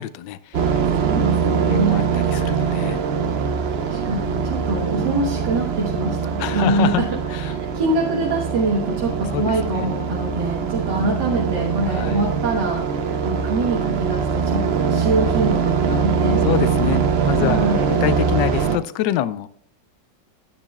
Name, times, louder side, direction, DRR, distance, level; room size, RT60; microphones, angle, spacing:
voice 1, 0.0-0.8 1.7-3.0 6.4-7.0 7.3-7.6 9.3-9.9 11.9-12.2 16.4-19.5, left 13 dB, 80° left, 1.2 m, -26 dB
sound 1, 0.5-18.8, right 6 dB, 55° right, 0.7 m, -22 dB
voice 2, 0.9-2.1 3.8-7.2 7.5-16.4 17.4-17.9, right 2 dB, 75° right, 2.0 m, -24 dB
10.5 x 10.0 x 2.2 m
omnidirectional pair, 1.9 m